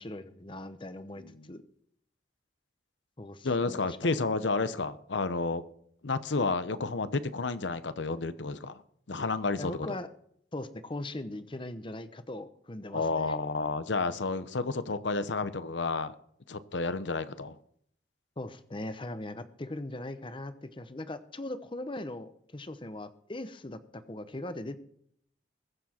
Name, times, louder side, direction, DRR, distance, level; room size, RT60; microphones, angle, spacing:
voice 1, 0.0-1.6 3.2-4.2 9.6-10.1 10.5-13.3 18.4-24.8, left 1 dB, 30° left, 12 dB, 0.8 m, -40 dB
voice 2, 3.4-5.6 6.0-8.7 9.1-9.9 12.9-16.1 16.5-17.6, left 3 dB, 90° left, 13 dB, 0.9 m, -31 dB
21.5 x 7.2 x 4.4 m, 0.66 s
head